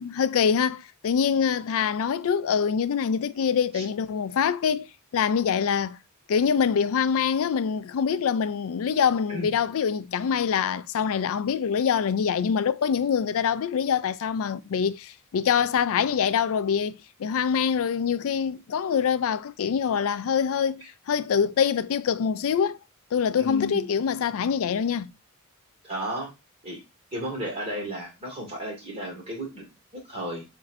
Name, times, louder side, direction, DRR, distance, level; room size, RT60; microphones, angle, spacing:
voice 1, 0.0-4.9 5.1-6.0 6.3-22.8 23.1-25.1, left 7 dB, 65° left, 0.4 m, -25 dB
voice 2, 23.4-23.8 25.8-26.3 26.6-26.8 27.1-30.4, equal, 25° right, 1.8 m, -34 dB
7.1 x 2.7 x 2.5 m
head